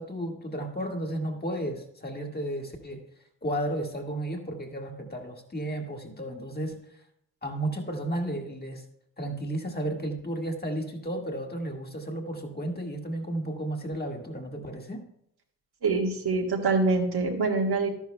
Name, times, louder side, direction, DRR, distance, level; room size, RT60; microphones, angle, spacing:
voice 1, 0.0-3.0 3.4-6.8 7.4-8.8 9.2-15.0, right 1 dB, 20° left, 2 dB, 1.8 m, -33 dB
voice 2, 15.8-17.9, right 3 dB, 65° right, 0 dB, 1.8 m, -25 dB
12.0 x 10.5 x 2.2 m, 0.75 s
supercardioid pair, 50°, 43 cm